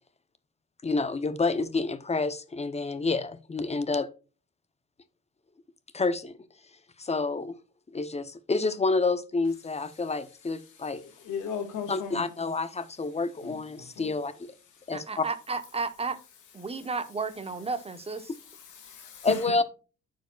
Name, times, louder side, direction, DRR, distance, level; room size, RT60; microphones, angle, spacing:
voice 1, 0.8-4.1 5.9-6.4 7.0-7.6 7.9-11.0 11.9-14.5 14.9-15.3 19.2-19.6, left 3 dB, 20° left, 0.6 m, -28 dB
voice 2, 11.0-12.3 13.4-14.1 18.7-19.4, left 6 dB, 85° left, 1.7 m, -37 dB
voice 3, 14.9-16.2 16.5-18.3, right 4 dB, 20° right, 0.9 m, -33 dB
13.5 x 4.7 x 2.3 m
cardioid pair, 90°, 30 cm